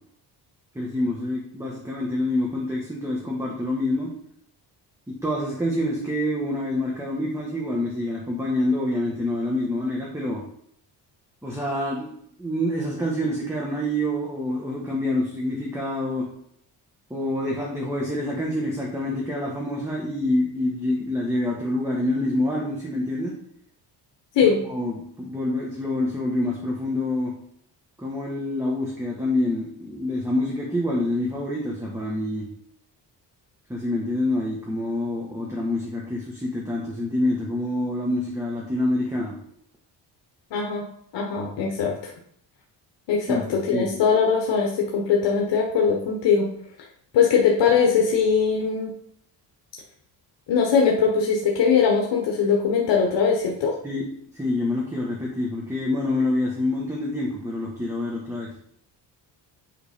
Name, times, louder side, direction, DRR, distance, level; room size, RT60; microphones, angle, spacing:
voice 1, 0.7-4.1 5.1-10.4 11.4-12.1 12.4-16.3 17.1-23.3 24.6-27.4 28.0-32.5 33.7-39.3 43.3-43.4 43.7-43.9 53.8-54.0 54.3-58.5, left 1 dB, 5° right, -4 dB, 1.4 m, -26 dB
voice 2, 40.5-40.8 41.1-42.1 43.1-46.5 47.1-48.9 50.5-53.7, left 6 dB, 75° left, -1 dB, 1.3 m, -21 dB
8.5 x 3.7 x 5.1 m, 0.68 s
cardioid pair, 130°, 43 cm